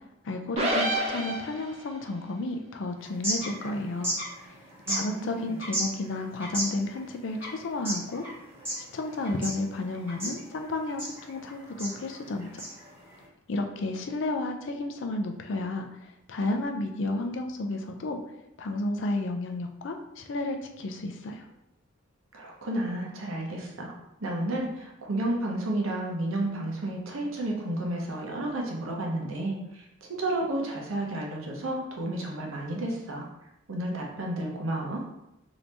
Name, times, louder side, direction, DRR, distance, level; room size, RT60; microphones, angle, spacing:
voice 1, 0.2-4.2 4.5-4.6 4.9-8.2 8.9-12.6 13.5-18.2 18.6-21.5, left 2 dB, 60° left, 4 dB, 0.4 m, -32 dB
sound 1, 0.6-1.9, right 1 dB, 30° right, 0.5 m, -28 dB
sound 2, 3.0-13.2, right 1 dB, 10° right, 1.1 m, -36 dB
voice 2, 4.9-5.6 22.3-33.3 33.7-35.0, right 1 dB, 80° right, 0 dB, 0.8 m, -32 dB
2.9 x 2.7 x 3.3 m, 0.87 s
head